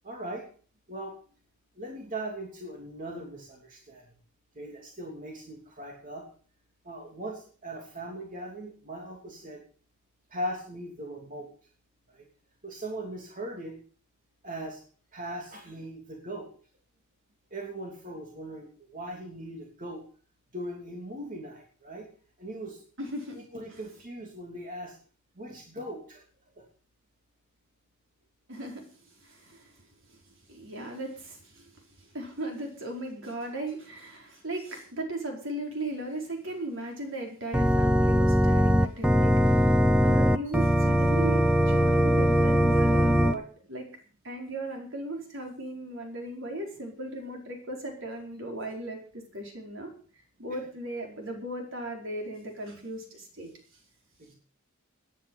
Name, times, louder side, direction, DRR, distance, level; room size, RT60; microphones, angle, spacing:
voice 1, 0.0-0.5 0.9-1.1 1.8-4.0 4.5-6.3 6.8-9.6 10.3-11.5 12.1-12.2 12.6-13.8 14.4-14.8 15.1-16.5 17.5-20.0 20.5-22.0 22.4-22.8 23.3-24.9 25.4-26.2 54.2-54.3, right 1 dB, 40° right, 0 dB, 3.1 m, -39 dB
voice 2, 23.0-23.4 23.7-23.8 28.5-28.9 29.2-29.7 30.1-30.2 30.5-31.7 32.0-43.9 44.2-49.9 50.4-53.5, right 1 dB, 65° right, 1 dB, 4.8 m, -37 dB
Organ, 37.5-43.3, equal, 5° right, 0.7 m, -21 dB
18.0 x 10.0 x 5.6 m, 0.43 s
head